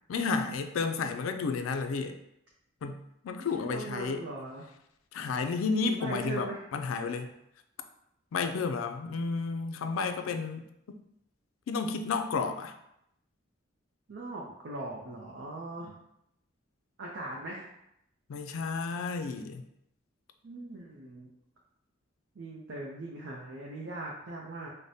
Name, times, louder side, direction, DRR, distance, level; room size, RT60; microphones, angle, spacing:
voice 1, 0.1-2.2 2.8-4.2 5.1-7.3 8.3-10.6 11.7-12.7 18.3-19.6, left 4 dB, 80° left, 7 dB, 0.4 m, -32 dB
voice 2, 3.4-4.7 5.8-6.6 14.1-16.0 17.0-17.7 20.4-21.3 22.4-24.7, right 2 dB, 60° right, -3 dB, 0.5 m, -40 dB
4.8 x 2.1 x 2.7 m, 0.79 s
head